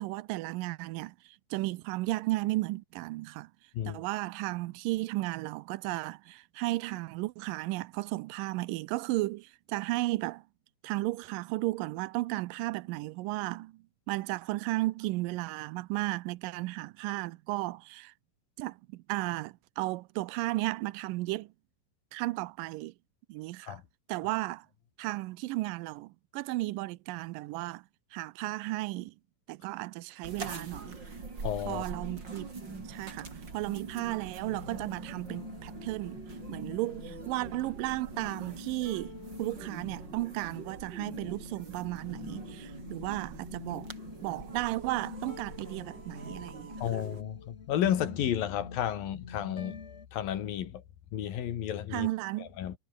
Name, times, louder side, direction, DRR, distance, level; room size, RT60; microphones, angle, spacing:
voice 1, 0.0-3.5 3.9-10.4 10.8-18.1 18.6-21.5 22.1-22.9 23.3-23.8 24.1-24.7 25.0-27.9 28.1-29.2 29.5-31.0 31.7-32.5 32.9-36.2 36.5-43.9 44.2-46.8 51.9-52.5, right 19 dB, 85° right, 2.3 m, -34 dB
sound 1, 30.2-47.2, right 4 dB, 30° right, 4.3 m, -44 dB
voice 2, 31.4-31.8 46.8-49.8 50.1-50.8 51.1-52.1 52.4-52.8, left 10 dB, 90° left, 3.7 m, -32 dB
sound 2, 34.4-50.1, left 5 dB, 60° left, 0.6 m, -47 dB
omnidirectional pair, 3.9 m